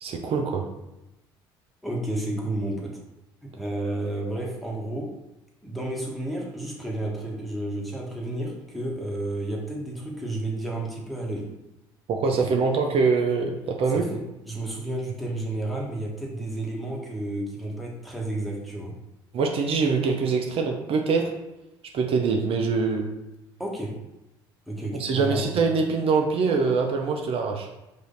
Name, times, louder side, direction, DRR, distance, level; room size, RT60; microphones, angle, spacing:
voice 1, 0.0-0.7 12.1-14.1 19.3-21.3 21.9-23.1 24.9-27.7, right 4 dB, 55° right, 3 dB, 0.6 m, -24 dB
voice 2, 1.8-3.0 3.4-5.1 5.6-11.5 13.9-18.9 23.6-23.9 24.7-25.5, right 1 dB, ahead, -3 dB, 1.4 m, -31 dB
4.9 x 2.7 x 3.9 m, 0.96 s
hypercardioid pair, 65°, 12 cm